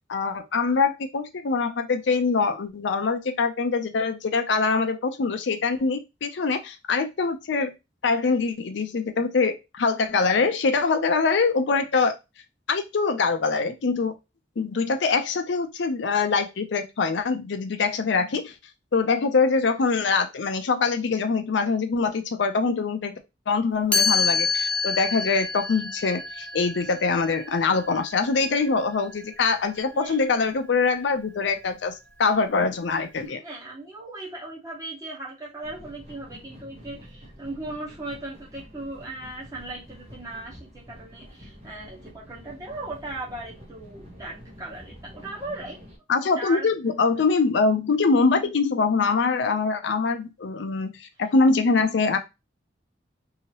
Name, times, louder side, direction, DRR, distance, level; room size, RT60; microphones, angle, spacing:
voice 1, 0.1-7.7 8.0-12.2 12.7-14.1 14.6-18.5 18.9-23.1 23.5-31.9 32.2-33.4 46.1-52.2, left 4 dB, 80° left, 7 dB, 0.5 m, -24 dB
Chime, 23.9-29.8, left 5 dB, 5° left, 0.4 m, -28 dB
voice 2, 29.9-30.2 33.2-45.8 46.4-46.7 47.2-47.3, right 2 dB, 20° right, -5 dB, 1.3 m, -38 dB
sound 1, 35.6-46.0, equal, 35° right, 1.0 m, -47 dB
2.8 x 2.7 x 2.9 m, 0.24 s
head